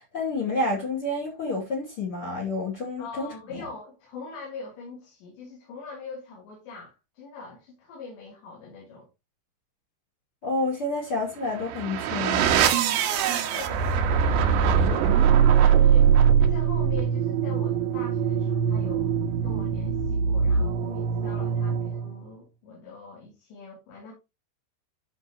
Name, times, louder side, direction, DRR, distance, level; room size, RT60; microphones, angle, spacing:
voice 1, 0.0-3.6 10.4-12.5, left 2 dB, 35° left, 2.9 m, -29 dB
voice 2, 3.0-9.1 12.9-16.1 16.4-24.1, left 4 dB, 75° left, 5.1 m, -43 dB
sound 1, 11.4-22.2, right 7 dB, 80° right, 3.3 m, -22 dB
12.5 x 5.8 x 3.0 m
omnidirectional pair, 5.1 m